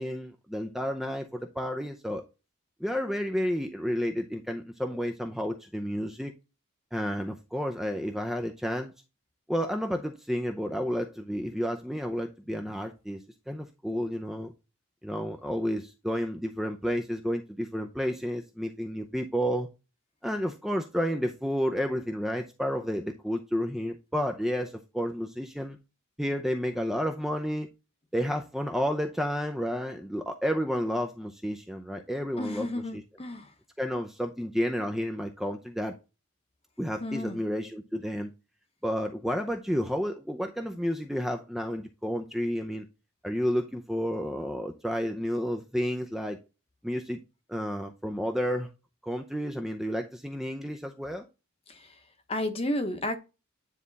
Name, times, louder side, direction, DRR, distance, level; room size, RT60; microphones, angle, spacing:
voice 1, 0.0-2.2 2.8-6.3 6.9-8.9 9.5-13.2 13.5-14.5 15.0-19.7 20.2-25.8 26.2-27.7 28.1-32.7 32.9-33.0 33.8-35.9 36.8-38.3 38.8-42.9 43.2-46.4 46.8-47.2 47.5-48.7 49.0-51.3, equal, ahead, 0.6 m, -31 dB
voice 2, 32.4-33.5 37.0-37.4 51.7-52.0 52.3-53.2, left 1 dB, 25° left, 1.0 m, -32 dB
9.7 x 3.5 x 4.0 m
head